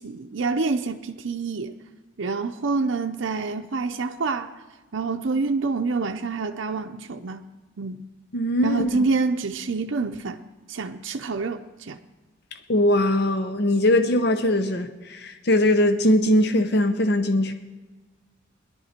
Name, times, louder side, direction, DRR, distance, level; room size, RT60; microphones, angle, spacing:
voice 1, 0.0-1.7 2.2-4.5 4.9-7.4 7.8-8.0 8.6-10.4 10.7-12.0, right 4 dB, 75° right, 0.6 m, -27 dB
voice 2, 8.3-8.9 12.7-17.5, left 1 dB, 55° left, 0.7 m, -21 dB
18.0 x 11.5 x 4.3 m
head